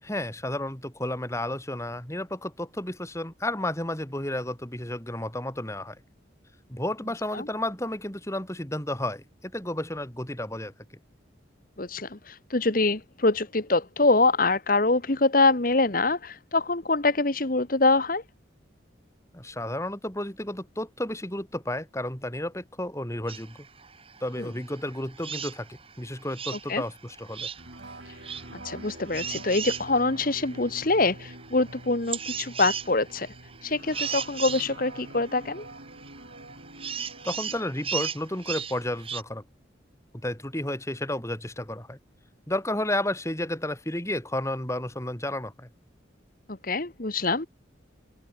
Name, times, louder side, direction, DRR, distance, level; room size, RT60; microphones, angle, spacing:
voice 1, 0.0-6.0 6.7-10.7 19.3-23.6 24.2-27.5 37.2-39.4 40.2-42.0 42.5-45.7, left 1 dB, 15° left, 7.0 m, -32 dB
voice 2, 11.8-18.2 24.4-24.5 26.7-26.8 28.1-28.2 28.6-33.3 33.6-35.6 46.6-47.5, left 3 dB, 45° left, 1.5 m, -24 dB
sound 1, 23.3-39.2, right 7 dB, 30° right, 2.1 m, -37 dB
sound 2, 27.6-37.6, right 1 dB, 65° right, 5.5 m, -46 dB
open air
head